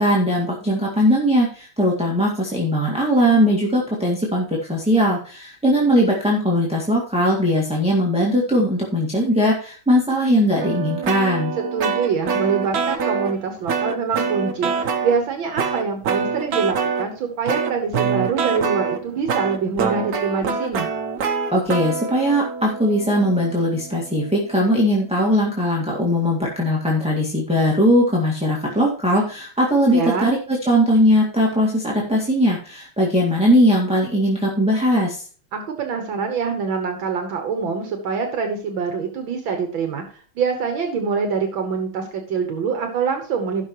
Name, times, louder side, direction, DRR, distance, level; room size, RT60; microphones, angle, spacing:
voice 1, 0.0-11.5 21.5-35.3, equal, 5° right, -4 dB, 1.6 m, -19 dB
sound 1, 10.6-13.4 13.7-15.2 15.6-17.0 17.5-24.5, right 6 dB, 55° right, 1.2 m, -25 dB
voice 2, 11.7-20.9 29.9-30.3 35.5-43.7, right 5 dB, 75° right, 5 dB, 1.9 m, -25 dB
16.0 x 6.0 x 3.0 m, 0.42 s
omnidirectional pair, 2.2 m